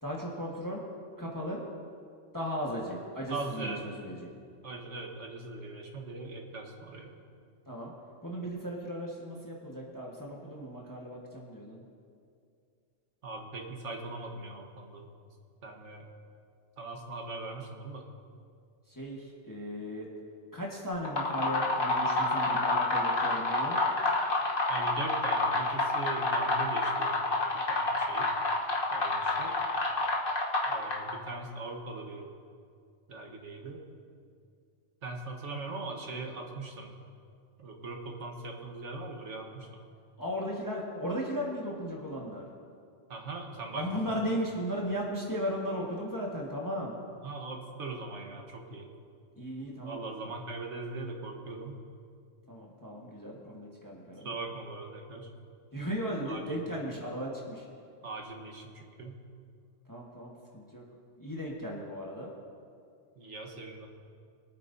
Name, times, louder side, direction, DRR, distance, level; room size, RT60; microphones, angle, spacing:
voice 1, 0.0-0.8 1.2-1.6 2.3-4.3 7.6-7.9 8.2-11.8 18.9-20.1 20.5-23.8 40.2-42.5 43.7-46.9 49.4-50.0 52.5-54.3 55.7-57.7 59.9-60.8 61.2-62.3, equal, 15° left, -3 dB, 1.4 m, -36 dB
voice 2, 3.3-3.8 4.6-7.1 13.2-15.1 15.6-16.1 16.8-18.0 24.7-27.2 27.7-28.3 28.9-29.6 30.6-32.3 33.1-33.8 35.0-36.9 37.6-39.8 43.1-44.2 47.2-48.9 49.8-51.8 54.2-55.3 56.2-56.4 58.0-59.2 63.2-63.9, right 3 dB, 75° right, 1 dB, 1.6 m, -40 dB
sound 1, 20.9-31.3, left 2 dB, 50° left, 1.4 m, -29 dB
23.5 x 9.0 x 2.7 m, 2.3 s
omnidirectional pair, 1.2 m